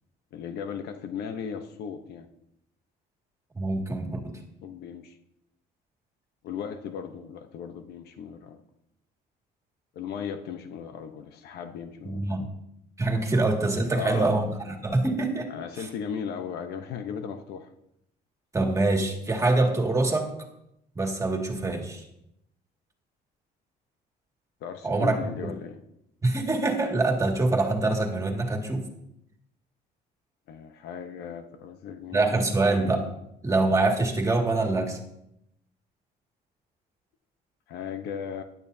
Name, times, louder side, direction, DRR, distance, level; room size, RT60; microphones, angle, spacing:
voice 1, 0.3-2.3 4.6-5.2 6.4-8.6 9.9-12.5 13.9-14.3 15.5-17.7 24.6-25.8 30.5-32.7 37.7-38.4, left 7 dB, 75° left, 7 dB, 1.0 m, -37 dB
voice 2, 3.5-4.2 12.0-12.5 13.0-15.5 18.5-20.3 21.0-22.0 24.8-25.5 26.2-28.9 32.1-33.1 33.4-35.0, right 2 dB, 20° right, 2 dB, 2.2 m, -25 dB
15.5 x 11.0 x 2.8 m, 0.79 s
cardioid pair, 110°, 17 cm